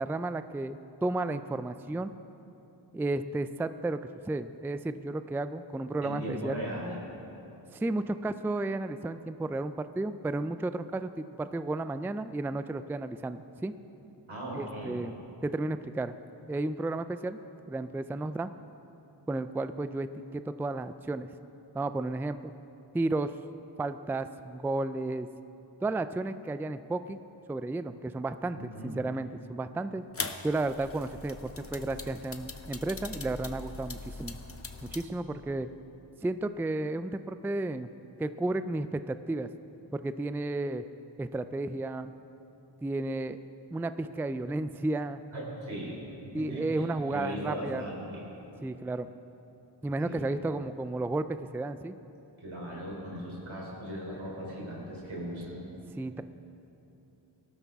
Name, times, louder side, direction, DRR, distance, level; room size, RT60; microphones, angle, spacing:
voice 1, 0.0-2.1 2.9-6.6 7.7-13.7 14.5-15.1 15.4-16.2 16.5-17.4 17.7-18.5 19.3-21.3 21.7-22.6 22.9-23.4 23.8-25.3 25.8-27.2 27.5-30.0 30.4-34.4 34.8-35.7 36.2-37.9 38.2-39.5 39.9-40.8 41.2-42.1 42.8-43.4 43.7-45.2 46.3-47.8 48.6-49.1 49.8-51.9 56.0-56.2, right 2 dB, 5° right, 12 dB, 0.3 m, -33 dB
voice 2, 6.0-7.0 14.3-15.0 28.5-28.9 45.3-48.2 50.0-50.3 52.4-55.7, equal, 90° right, -3 dB, 3.4 m, -38 dB
sound 1, 30.1-35.1, left 3 dB, 30° left, 0.8 m, -41 dB
18.5 x 12.5 x 3.6 m, 3.0 s
wide cardioid pair, 45°, 46 cm